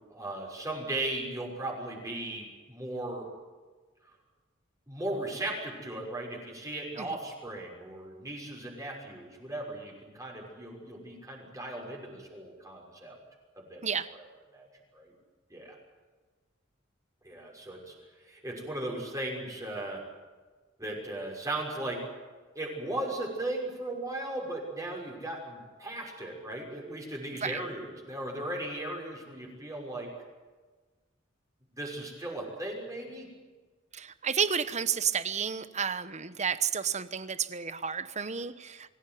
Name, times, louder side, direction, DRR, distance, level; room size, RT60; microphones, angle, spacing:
voice 1, 0.0-3.3 4.9-13.2 13.5-14.2 14.5-14.7 14.9-15.1 15.5-15.8 17.2-17.9 18.2-20.0 20.8-22.0 22.5-30.1 31.8-33.3, right 1 dB, 15° right, -1 dB, 6.2 m, -37 dB
voice 2, 33.9-38.9, right 7 dB, 35° right, 13 dB, 1.1 m, -31 dB
25.0 x 16.5 x 9.4 m, 1.3 s
head